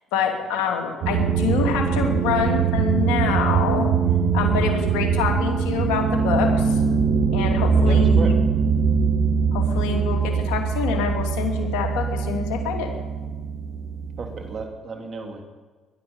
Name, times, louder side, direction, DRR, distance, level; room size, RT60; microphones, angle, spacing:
voice 1, 0.1-3.9 4.3-6.8 7.3-8.4 9.5-12.9, left 6 dB, 80° left, 2 dB, 2.9 m, -26 dB
sound 1, 1.0-14.6, right 6 dB, 65° right, 1.7 m, -22 dB
voice 2, 7.8-8.4 14.2-15.4, right 4 dB, 45° right, 3 dB, 3.0 m, -33 dB
21.5 x 11.5 x 5.6 m, 1.4 s
supercardioid pair, 70°, 0 cm